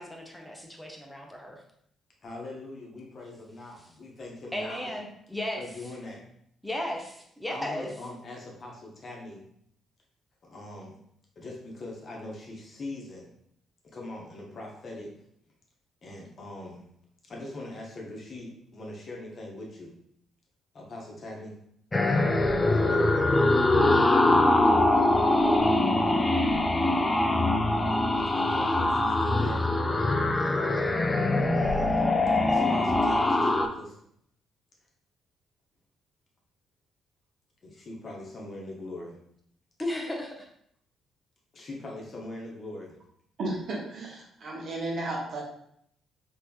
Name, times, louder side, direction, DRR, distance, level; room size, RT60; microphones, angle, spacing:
voice 1, 0.0-1.6 3.8-3.9 4.5-5.6 6.6-7.9 39.8-40.5, left 1 dB, 5° left, 0 dB, 0.7 m, -35 dB
voice 2, 2.2-4.9 5.6-6.2 7.5-9.4 10.4-11.0 11.4-13.3 13.9-15.1 16.0-16.8 17.3-19.9 20.7-21.5 28.1-29.7 32.3-34.0 37.6-39.2 41.5-43.0, left 2 dB, 45° left, -2 dB, 0.8 m, -41 dB
sound 1, 21.9-33.7, left 2 dB, 25° left, 0.3 m, -23 dB
voice 3, 43.4-45.4, right 2 dB, 55° right, -3 dB, 0.8 m, -33 dB
3.3 x 2.7 x 2.3 m, 0.70 s
figure-of-eight pair, 40°, 0 cm